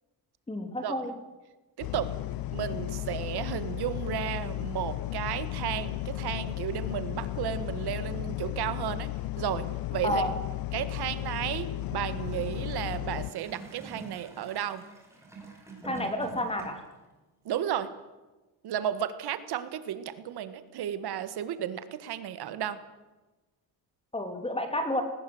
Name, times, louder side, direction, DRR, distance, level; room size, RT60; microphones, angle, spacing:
voice 1, 0.5-1.1 10.0-10.3 15.8-16.8 24.1-25.0, left 1 dB, 15° left, 6 dB, 2.9 m, -30 dB
sound 1, 1.8-13.3, left 16 dB, 60° left, 0.8 m, -34 dB
voice 2, 1.8-2.1 2.5-9.1 9.4-9.7 9.9-10.2 10.7-14.8 17.5-17.9 18.6-22.8, right 10 dB, 70° right, 13 dB, 1.8 m, -33 dB
Gurgling / Toilet flush, 12.1-17.0 17.8-17.9, right 3 dB, 5° right, 6.2 m, -46 dB
20.0 x 20.0 x 7.9 m, 1.1 s
cardioid pair, 145°, 40 cm